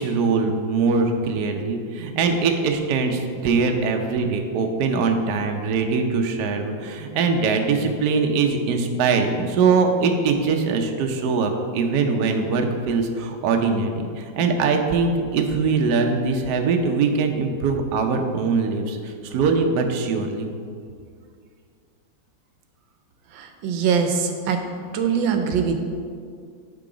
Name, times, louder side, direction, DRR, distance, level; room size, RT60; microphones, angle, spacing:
voice 1, 0.0-20.5, right 4 dB, 65° right, 4 dB, 1.1 m, -22 dB
voice 2, 23.3-24.6 24.9-25.8, right 6 dB, 80° right, 5 dB, 1.4 m, -22 dB
10.5 x 3.8 x 4.9 m, 2.2 s
omnidirectional pair, 2.1 m